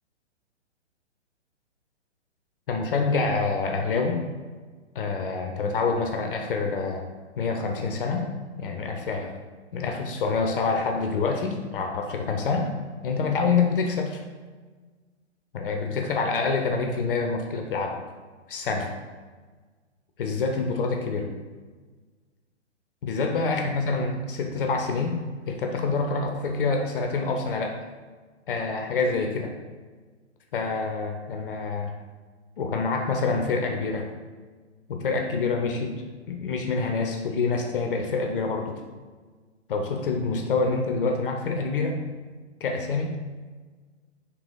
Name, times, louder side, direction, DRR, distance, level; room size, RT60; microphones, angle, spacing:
voice 1, 2.7-4.2 4.9-7.0 7.4-8.3 8.6-9.3 9.7-12.7 13.0-14.2 15.5-18.0 18.5-18.9 20.2-21.3 23.0-25.2 25.5-27.8 28.5-29.5 30.5-31.9 32.6-34.1 34.9-35.9 36.3-38.8 39.7-42.0 42.6-43.1, left 4 dB, 50° left, 3 dB, 0.6 m, -26 dB
3.8 x 3.0 x 4.7 m, 1.4 s
figure-of-eight pair, 120°, 35 cm